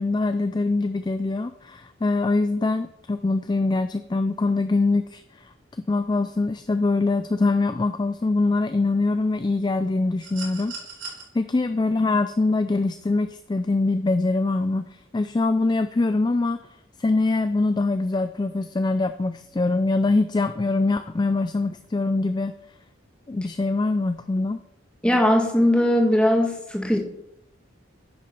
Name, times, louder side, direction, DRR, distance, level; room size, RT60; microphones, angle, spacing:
voice 1, 0.0-5.5 5.8-10.7 11.3-16.6 17.0-22.5 23.3-24.6, left 3 dB, 20° left, 11 dB, 0.3 m, -23 dB
sound 1, 10.2-11.2 12.7-12.9, right 6 dB, 65° right, 3.9 m, -39 dB
voice 2, 25.0-27.0, left 1 dB, 5° left, 1 dB, 1.5 m, -19 dB
10.5 x 6.6 x 5.4 m, 0.79 s
head